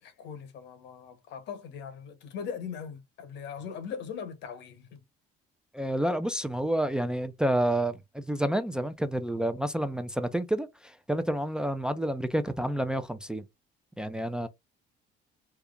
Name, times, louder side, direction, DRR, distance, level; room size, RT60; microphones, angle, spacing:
voice 1, 0.0-5.0, left 7 dB, 75° left, 1.2 m, -40 dB
voice 2, 5.7-13.4 14.0-14.5, right 1 dB, 5° right, 0.4 m, -29 dB
3.5 x 2.8 x 2.5 m
cardioid pair, 120°, 18 cm